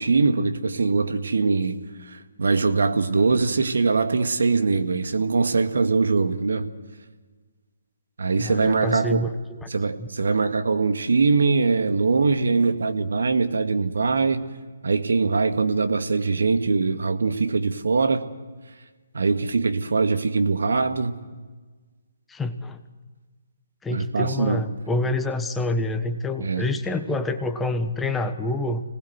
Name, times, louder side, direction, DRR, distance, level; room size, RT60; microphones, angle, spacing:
voice 1, 0.0-6.7 8.2-9.3 9.7-14.4 14.8-18.2 19.1-21.1 23.9-24.6 26.4-26.7, right 4 dB, 70° right, 1.8 m, -22 dB
voice 2, 8.4-9.7 10.0-10.1 22.3-22.8 23.8-28.8, left 2 dB, 10° left, 1.2 m, -27 dB
26.5 x 19.0 x 8.1 m
figure-of-eight pair, 145°, 0 cm